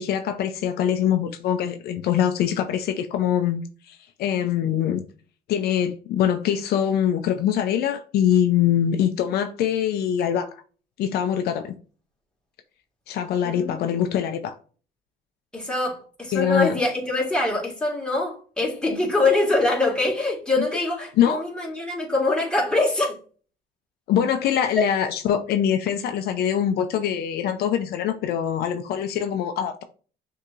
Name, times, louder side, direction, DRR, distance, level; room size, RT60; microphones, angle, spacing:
voice 1, 0.0-5.0 5.5-10.5 11.0-11.7 13.1-14.5 16.3-16.7 20.6-20.7 21.2-21.4 24.1-29.8, left 9 dB, 70° left, 0.5 m, -23 dB
voice 2, 13.4-13.9 15.5-23.1, left 2 dB, 5° left, 1.8 m, -24 dB
6.4 x 2.8 x 2.5 m
cardioid pair, 110°, 17 cm